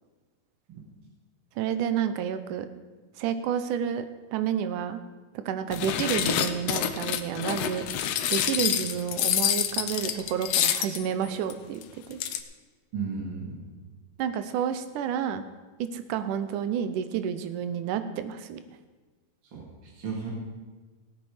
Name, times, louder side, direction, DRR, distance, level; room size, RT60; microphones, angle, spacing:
voice 1, 1.6-2.7 3.2-4.1 4.3-5.0 5.3-7.8 8.3-11.8 12.1-12.2 14.2-15.4 15.8-18.6, right 8 dB, 80° right, 10 dB, 2.3 m, -30 dB
sound 1, 5.7-11.0 11.5-11.6 11.8-11.9 12.1-12.4, left 10 dB, 80° left, 1.4 m, -27 dB
voice 2, 12.9-13.7 19.5-20.3, right 5 dB, 40° right, -3 dB, 2.6 m, -35 dB
17.5 x 8.6 x 5.0 m, 1.3 s
omnidirectional pair, 3.7 m